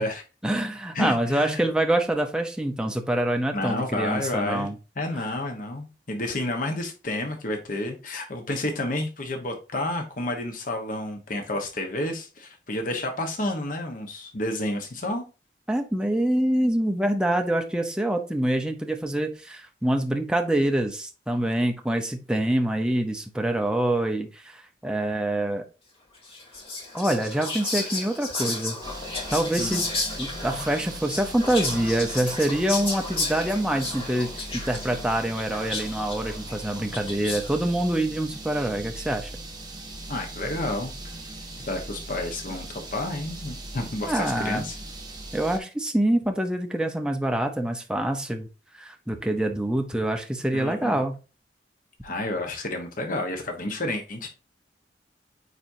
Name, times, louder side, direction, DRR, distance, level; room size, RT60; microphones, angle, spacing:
voice 1, 0.4-4.7 15.7-25.6 26.9-28.7 29.3-29.9 30.2-39.3 44.0-44.6 45.3-48.5 48.8-51.2, right 1 dB, 5° right, 4 dB, 0.7 m, -25 dB
voice 2, 0.9-1.7 3.5-4.7 5.0-15.2 29.6-29.8 40.1-41.1 41.7-44.8 50.5-51.0 52.0-54.3, left 1 dB, 50° left, 4 dB, 1.1 m, -30 dB
Whispering, 26.2-37.7, left 2 dB, 35° left, 2.5 m, -33 dB
sound 1, 28.8-45.6, right 2 dB, 25° right, 1.6 m, -39 dB
9.3 x 4.3 x 2.7 m, 0.31 s
head